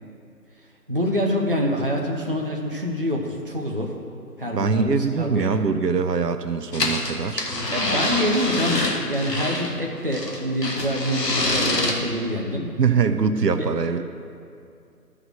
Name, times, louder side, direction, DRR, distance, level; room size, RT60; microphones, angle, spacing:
voice 1, 0.9-4.0 4.4-5.5 7.7-12.7 13.6-14.0, equal, 35° right, -1 dB, 0.7 m, -26 dB
voice 2, 4.5-7.4 12.8-14.0, right 5 dB, 85° right, 9 dB, 0.8 m, -23 dB
sound 1, 6.7-9.7 10.1-11.9, left 2 dB, 85° left, 1.8 m, -25 dB
12.0 x 5.0 x 6.4 m, 2.4 s
figure-of-eight pair, 175°, 48 cm